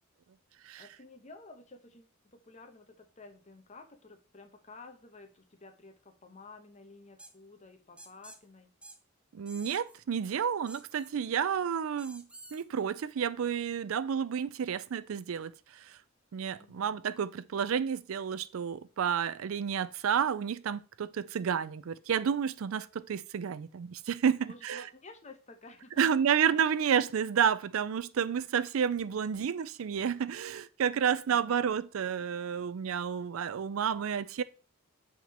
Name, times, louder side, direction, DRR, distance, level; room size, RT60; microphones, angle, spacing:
voice 1, 0.8-8.7 16.6-17.1 24.4-26.2 26.4-26.6 31.3-31.8, left 3 dB, 35° left, 1.0 m, -52 dB
sound 1, 7.2-7.3 8.0-8.4 8.8-9.0 9.5-10.0 10.7-11.1 12.0-12.6, right 1 dB, 5° right, 0.5 m, -50 dB
voice 2, 9.3-16.0 16.3-24.8 26.0-34.4, right 7 dB, 75° right, 0.4 m, -30 dB
7.1 x 3.7 x 4.3 m
head